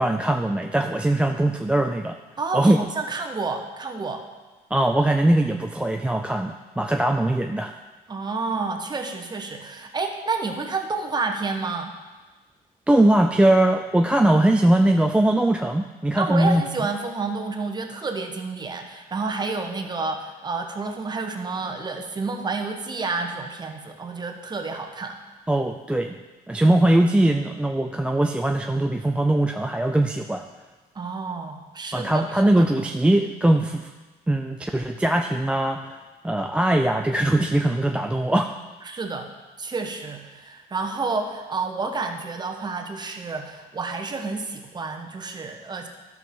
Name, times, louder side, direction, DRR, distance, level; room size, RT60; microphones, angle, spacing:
voice 1, 0.0-2.2 2.5-2.8 4.7-7.7 12.9-16.6 25.5-26.2 26.5-30.4 31.9-33.9 34.3-36.0 36.2-38.5, right 1 dB, 5° right, 3 dB, 0.4 m, -21 dB
voice 2, 2.4-4.2 8.1-11.9 16.2-25.2 30.9-32.6 38.8-39.3 39.6-45.9, right 4 dB, 25° right, 4 dB, 1.1 m, -30 dB
12.0 x 6.0 x 3.7 m, 1.2 s
cardioid pair, 110°, 17 cm